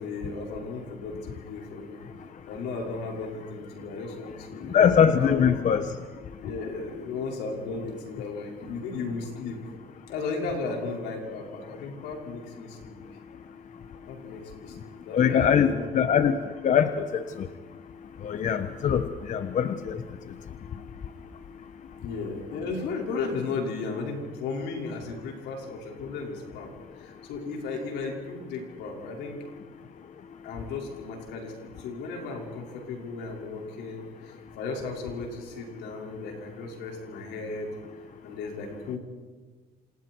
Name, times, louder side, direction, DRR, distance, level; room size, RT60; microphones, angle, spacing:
voice 1, 0.0-2.0 2.5-5.4 6.4-9.6 10.1-12.9 14.1-14.7 15.1-15.9 22.0-29.4 30.4-39.0, left 4 dB, 85° left, 0 dB, 5.7 m, -35 dB
voice 2, 4.7-5.9 15.1-16.4 16.6-17.2 18.2-19.0 19.3-20.0, left 8 dB, 50° left, 9 dB, 1.2 m, -22 dB
28.5 x 27.0 x 4.7 m, 1.4 s
cardioid pair, 110°, 17 cm